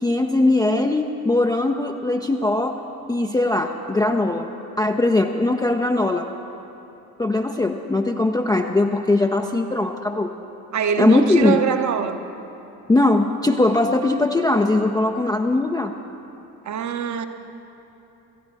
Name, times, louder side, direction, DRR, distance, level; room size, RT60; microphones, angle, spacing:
voice 1, 0.0-2.8 3.1-4.5 4.8-6.3 7.2-10.3 11.0-11.6 12.9-15.9, left 2 dB, 10° left, 3 dB, 0.5 m, -20 dB
voice 2, 10.7-12.2 16.7-17.3, right 7 dB, 35° right, 8 dB, 0.9 m, -23 dB
17.0 x 13.5 x 4.1 m, 3.0 s
figure-of-eight pair, 55°, 47 cm